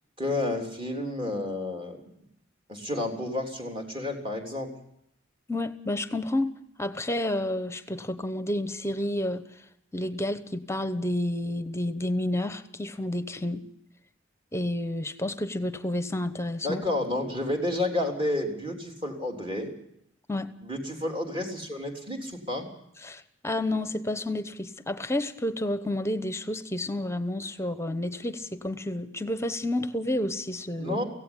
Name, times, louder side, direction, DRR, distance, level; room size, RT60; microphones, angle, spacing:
voice 1, 0.2-2.1 2.7-4.7 16.6-19.7 20.6-22.7 30.8-31.0, left 1 dB, 25° right, 2 dB, 3.6 m, -30 dB
voice 2, 5.5-9.4 9.9-13.6 14.5-16.8 20.3-20.5 23.0-31.0, left 1 dB, 15° left, 12 dB, 1.0 m, -30 dB
16.5 x 16.0 x 9.9 m, 0.75 s
head